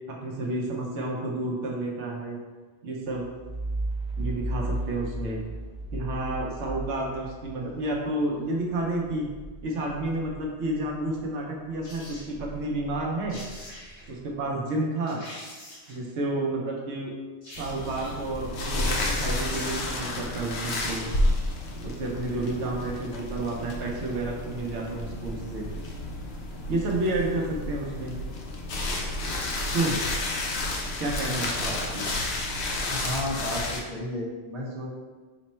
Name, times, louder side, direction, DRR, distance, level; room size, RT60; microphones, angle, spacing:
voice 1, 0.1-2.4 2.8-3.3 4.2-5.4 5.9-9.3 9.6-13.4 14.1-15.2 15.9-17.1 17.5-21.0 21.8-25.7 26.7-28.2 29.7-30.0 31.0-32.0, right 2 dB, 85° right, -2 dB, 0.9 m, -30 dB
sound 1, 3.1-11.3 11.7-14.3, right 1 dB, 5° right, 0.5 m, -36 dB
sound 2, 11.8-12.3 13.0-13.1 13.3-14.1 14.6-14.7 15.1-16.1 17.4-18.3 19.2-19.3 19.5-20.2 20.5-20.6, left 1 dB, 85° left, 1.7 m, -44 dB
sound 3, 17.6-33.8, left 1 dB, 70° left, 0.9 m, -31 dB
voice 2, 32.9-34.9, left 1 dB, 35° right, -5 dB, 1.1 m, -33 dB
5.1 x 2.1 x 4.2 m, 1.4 s
omnidirectional pair, 1.2 m